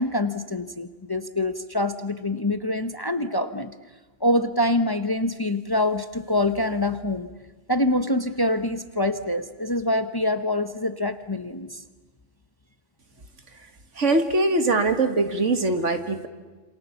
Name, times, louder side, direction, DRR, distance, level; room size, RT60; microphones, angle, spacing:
voice 1, 0.0-3.7 4.2-7.3 7.7-11.8, left 1 dB, 20° left, 10 dB, 0.9 m, -25 dB
voice 2, 14.0-16.3, right 2 dB, 75° right, 8 dB, 2.1 m, -22 dB
28.0 x 27.5 x 7.2 m, 1.3 s
omnidirectional pair, 1.3 m